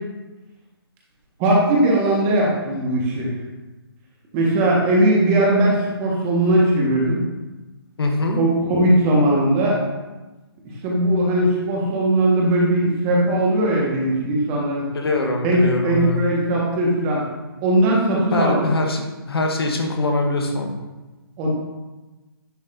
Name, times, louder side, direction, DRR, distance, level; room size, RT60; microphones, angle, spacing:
voice 1, 1.4-3.3 4.3-7.2 8.4-9.8 10.8-14.9 15.4-17.2 17.6-18.7 21.4-21.5, right 1 dB, 25° right, -3 dB, 1.4 m, -19 dB
voice 2, 8.0-8.4 14.9-16.2 18.3-20.7, left 2 dB, 70° left, 3 dB, 1.1 m, -23 dB
10.0 x 4.0 x 2.6 m, 1.1 s
hypercardioid pair, 150°, 13 cm